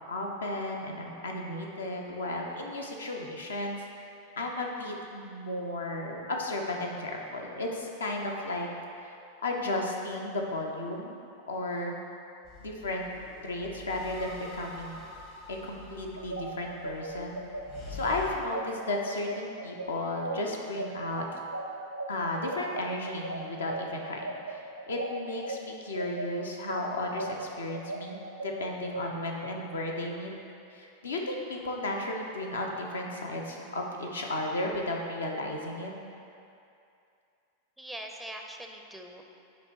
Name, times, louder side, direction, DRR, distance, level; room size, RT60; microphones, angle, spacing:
voice 1, 0.1-3.8 4.4-8.7 9.0-9.2 9.4-11.2 11.5-12.0 12.6-13.1 13.4-15.0 15.5-17.4 17.9-21.2 22.1-30.3 30.7-35.9, left 1 dB, 70° left, 1 dB, 0.8 m, -34 dB
sound 1, 12.4-18.3, left 4 dB, 50° left, 1.5 m, -46 dB
sound 2, 16.2-25.6 25.9-29.0, right 2 dB, 90° right, 0.6 m, -37 dB
voice 2, 37.8-39.2, right 1 dB, ahead, 2 dB, 0.5 m, -42 dB
9.4 x 3.2 x 4.6 m, 2.6 s
figure-of-eight pair, 90°, 0 cm